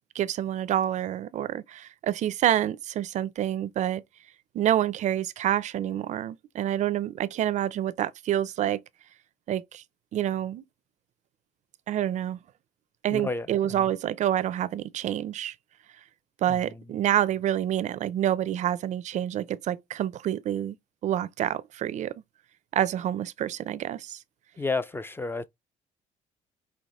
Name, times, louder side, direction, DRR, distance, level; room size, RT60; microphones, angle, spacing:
voice 1, 0.1-4.0 4.5-8.8 9.5-9.8 10.1-10.6 11.9-12.4 13.0-15.5 16.4-20.8 21.0-22.1 22.7-24.2, right 11 dB, 55° right, 0.5 m, -27 dB
voice 2, 13.1-13.5 16.5-16.6 24.6-25.5, left 3 dB, 15° left, 0.4 m, -30 dB
5.5 x 2.9 x 3.0 m
supercardioid pair, 90°, 15 cm